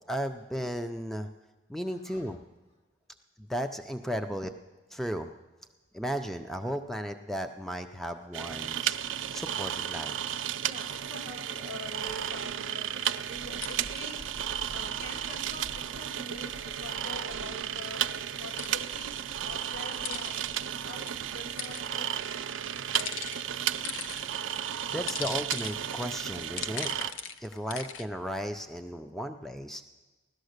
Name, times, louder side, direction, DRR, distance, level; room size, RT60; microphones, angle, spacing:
voice 1, 0.1-1.3 1.7-2.4 3.4-4.5 4.9-5.3 5.9-9.0 9.3-10.3 24.0-24.3 24.9-29.8, equal, ahead, 6 dB, 0.4 m, -35 dB
voice 2, 1.8-2.3 10.6-14.3 14.7-19.2 19.4-20.6 20.8-22.1, left 1 dB, 65° left, 0 dB, 2.3 m, -45 dB
sound 1, 8.3-27.1, right 10 dB, 85° right, 0.5 m, -34 dB
sound 2, 12.3-12.5 13.0-14.0 18.3-18.8 19.8-20.3 21.1-21.9 22.7-24.3 24.8-28.1, left 7 dB, 80° left, 0.7 m, -40 dB
sound 3, 13.3-20.9, equal, 30° left, 1.1 m, -51 dB
16.5 x 12.0 x 6.5 m, 1.2 s
head